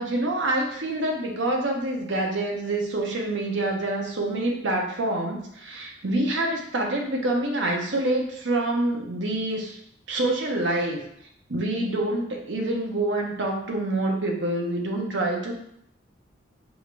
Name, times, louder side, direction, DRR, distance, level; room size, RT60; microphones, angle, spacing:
voice 1, 0.0-9.8 10.1-11.0 11.5-15.5, right 1 dB, 70° right, 0 dB, 0.8 m, -26 dB
4.9 x 3.4 x 2.5 m, 0.72 s
head